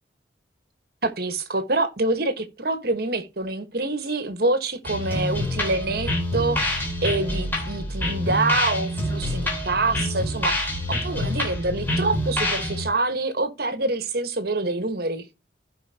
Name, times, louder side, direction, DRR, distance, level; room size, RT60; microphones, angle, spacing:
voice 1, 1.0-15.3, right 2 dB, 55° right, 1.4 m, -26 dB
sound 1, 4.8-12.9, left 1 dB, 10° left, 3.7 m, -27 dB
15.5 x 5.9 x 2.9 m
head